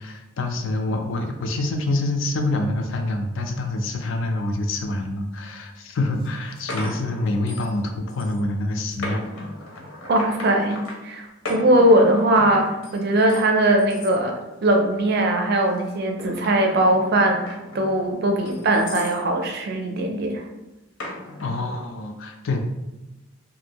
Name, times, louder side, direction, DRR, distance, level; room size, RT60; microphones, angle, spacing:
voice 1, 0.0-9.2 21.4-22.6, left 2 dB, 60° left, 4 dB, 0.4 m, -26 dB
sound 1, 5.6-5.7 6.2-7.8 8.1-8.4 8.9-11.0 11.4-13.4 13.8-14.1 14.6-15.0 15.7-19.2 21.0-21.8, left 1 dB, 85° left, 0.8 m, -36 dB
voice 2, 10.1-10.8 11.0-20.5, right 1 dB, 50° right, 3 dB, 0.4 m, -20 dB
2.6 x 2.6 x 2.8 m, 1.0 s
head